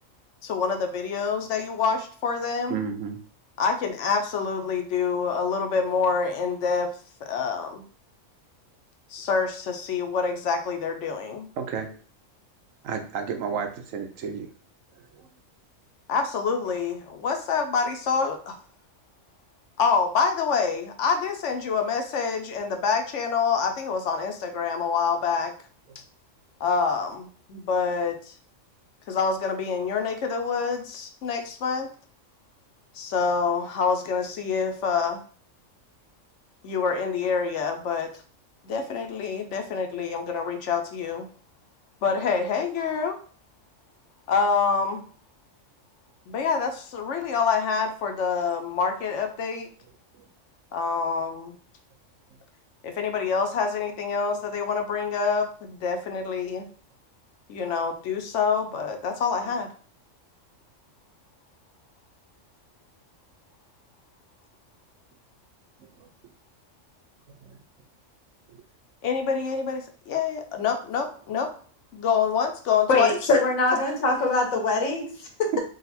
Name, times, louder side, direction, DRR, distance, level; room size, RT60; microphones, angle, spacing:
voice 1, 0.4-2.8 3.6-6.9 7.2-7.8 9.1-11.5 16.1-18.6 19.8-25.5 26.6-28.3 29.1-31.9 32.9-35.2 36.6-38.1 38.6-41.3 42.0-43.2 44.3-45.0 46.3-49.7 50.7-51.6 52.8-56.7 57.5-59.7 69.0-71.5 71.9-73.2, left 5 dB, 70° left, 6 dB, 0.9 m, -26 dB
voice 2, 2.7-3.2 11.6-11.9 12.8-14.5 15.0-15.3 50.2-50.3 66.0-66.1 67.4-67.6 68.5-68.6 75.5-75.6, right 7 dB, 80° right, 5 dB, 1.1 m, -32 dB
voice 3, 72.9-75.5, left 3 dB, 85° left, 1 dB, 1.4 m, -23 dB
3.9 x 2.4 x 4.1 m, 0.43 s
omnidirectional pair, 1.4 m